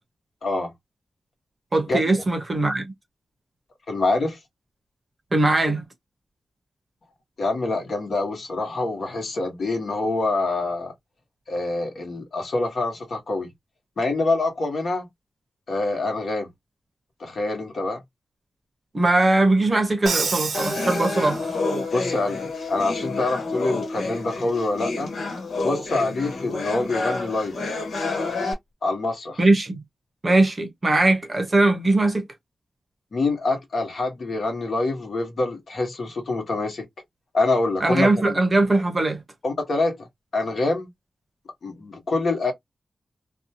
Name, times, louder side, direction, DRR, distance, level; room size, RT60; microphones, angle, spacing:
voice 1, 1.7-2.9 5.3-5.8 18.9-21.5 29.4-29.8 30.2-32.2 37.8-39.2, right 2 dB, 30° right, 0.7 m, -20 dB
voice 2, 3.9-4.4 7.4-10.9 11.5-13.5 14.0-15.1 15.7-16.5 17.2-18.0 21.9-25.1 25.6-27.5 28.8-29.4 33.1-36.8 37.3-38.3 39.4-40.0 40.3-40.9 41.6-42.5, left 2 dB, 55° left, 1.2 m, -25 dB
Crash cymbal, 20.1-21.8, right 5 dB, 60° right, 0.5 m, -29 dB
sound 1, 20.5-28.5, left 3 dB, 90° left, 1.1 m, -29 dB
2.6 x 2.2 x 2.7 m
wide cardioid pair, 165°, 0 cm